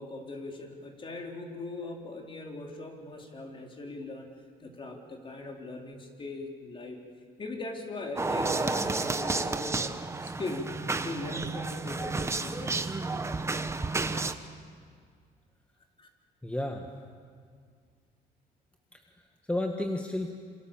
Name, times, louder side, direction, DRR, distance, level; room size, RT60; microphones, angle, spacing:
voice 1, 0.0-4.3 4.6-7.0 7.4-9.8 10.2-12.9 16.0-16.1, left 2 dB, 30° left, 1 dB, 3.9 m, -40 dB
sound 1, 8.2-14.3, right 3 dB, 15° right, 1.2 m, -31 dB
voice 2, 16.4-16.9 18.9-20.3, left 1 dB, 5° left, 3 dB, 1.7 m, -33 dB
27.5 x 27.0 x 7.4 m, 2.1 s
cardioid pair, 110°, 17 cm